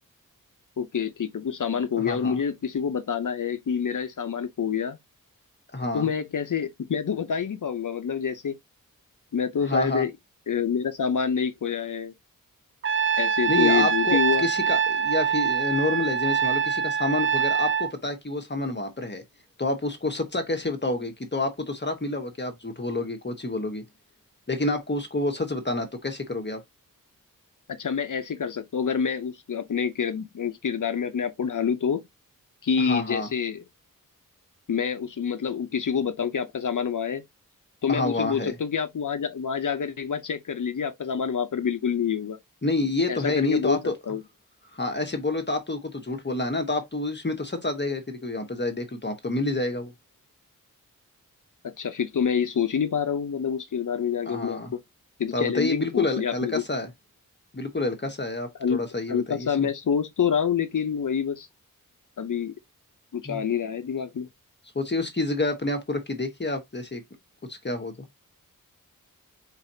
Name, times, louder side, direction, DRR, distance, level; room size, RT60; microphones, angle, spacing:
voice 1, 0.8-5.0 5.9-8.6 9.3-10.1 10.5-12.1 13.2-14.5 27.8-32.0 32.6-33.6 34.7-37.2 37.8-42.4 43.1-43.8 44.1-44.2 51.8-54.6 55.2-56.6 58.6-58.8 59.1-61.5 62.2-62.5 63.1-64.3, left 7 dB, 65° left, 0.7 m, -27 dB
voice 2, 2.0-2.4 5.7-6.1 9.6-10.0 13.5-19.2 19.6-23.8 24.5-26.6 32.8-33.3 37.9-38.5 42.6-43.9 44.7-49.9 54.2-54.7 55.3-56.9 57.5-59.7 63.2-63.4 64.7-67.0 67.5-67.9, left 2 dB, 30° left, 1.2 m, -28 dB
Trumpet, 12.8-17.9, right 7 dB, 40° right, 0.4 m, -24 dB
4.1 x 4.0 x 2.7 m
wide cardioid pair, 65°, 34 cm